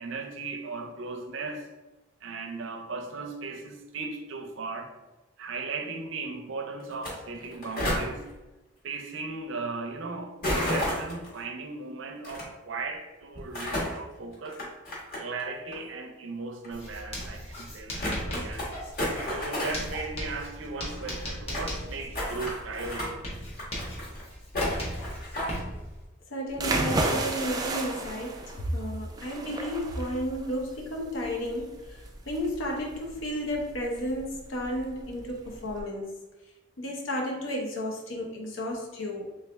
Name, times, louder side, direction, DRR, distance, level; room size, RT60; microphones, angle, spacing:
voice 1, 0.0-1.7 2.2-4.9 5.4-8.3 8.8-14.6 15.1-18.7 19.3-23.2, right 3 dB, 75° right, 0.5 m, -37 dB
sound 1, 6.9-7.1 7.4-8.1 10.4-11.3 12.2-12.4 13.3-14.0 14.5-15.4 15.7-15.8 16.6-16.7 17.2-17.3 17.6-17.7 18.0-18.7 19.0-19.9 20.2-20.3 20.5-20.6 20.8-21.7 22.1-23.1 23.5-24.2 24.5-25.6, left 1 dB, 45° left, 1.5 m, -31 dB
Writing, 16.7-26.0, equal, 30° left, 1.0 m, -38 dB
voice 2, 26.3-28.4 28.7-36.1 36.8-39.3, equal, 80° left, 0.7 m, -33 dB
sound 2, 26.5-35.8, right 2 dB, 20° right, 0.3 m, -33 dB
3.4 x 3.2 x 3.4 m
head